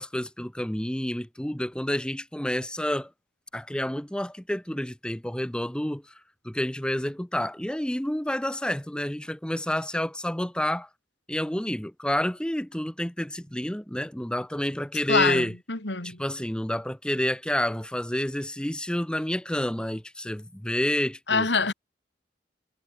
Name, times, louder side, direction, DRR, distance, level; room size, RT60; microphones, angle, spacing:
voice 1, 0.0-3.1 3.5-6.1 6.4-10.9 11.3-15.5 16.0-21.5, left 1 dB, 5° left, 0.8 m, -29 dB
voice 2, 15.1-16.2 21.3-21.7, left 4 dB, 90° left, 3.7 m, -25 dB
head